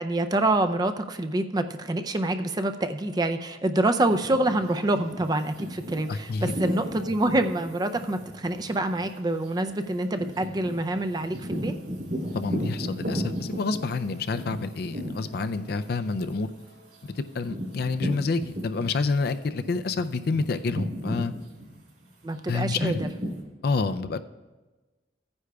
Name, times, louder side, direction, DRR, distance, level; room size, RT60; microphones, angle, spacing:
voice 1, 0.0-11.7 22.2-23.1, right 1 dB, 25° right, 8 dB, 0.4 m, -26 dB
sound 1, 4.1-19.2 19.6-23.4, equal, 55° right, 3.3 m, -36 dB
voice 2, 6.1-6.5 12.3-16.5 17.2-21.3 22.5-23.0 23.6-24.2, left 4 dB, 60° left, 11 dB, 0.4 m, -28 dB
15.5 x 9.6 x 2.3 m, 1.2 s
head